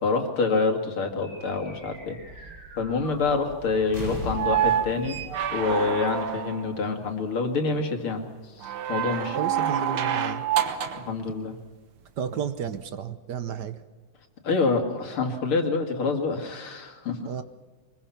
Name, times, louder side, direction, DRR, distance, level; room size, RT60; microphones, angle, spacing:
voice 1, 0.0-2.2 2.8-5.2 5.5-8.3 8.6-9.4 11.0-11.6 14.4-17.3, left 4 dB, 90° left, 4 dB, 3.2 m, -27 dB
sound 1, 1.2-6.9, right 1 dB, 40° right, 8.1 m, -41 dB
sound 2, 4.3-6.8 8.6-11.1 12.7-12.8, right 9 dB, 85° right, 2.1 m, -27 dB
voice 2, 9.3-10.5 12.2-13.8 17.2-17.4, right 8 dB, 60° right, 12 dB, 1.4 m, -32 dB
24.0 x 21.5 x 5.8 m, 1.4 s
omnidirectional pair, 2.3 m